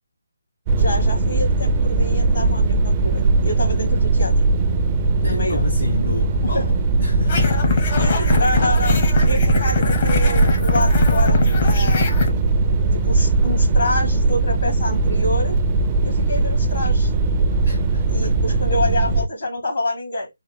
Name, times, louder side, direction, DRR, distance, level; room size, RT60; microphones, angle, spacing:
sound 1, 0.7-19.3, right 3 dB, 25° right, 0.4 m, -19 dB
voice 1, 0.8-4.3 5.2-5.6 6.4-6.6 7.9-12.2 13.0-15.6 16.0-17.1 18.1-20.3, left 1 dB, 55° left, 1.6 m, -27 dB
voice 2, 5.2-6.7 7.0-7.8 17.6-18.7, left 2 dB, 70° left, 0.9 m, -29 dB
sound 2, 7.3-12.3, left 5 dB, 35° left, 0.9 m, -22 dB
4.1 x 2.2 x 4.3 m
figure-of-eight pair, 150°, 0 cm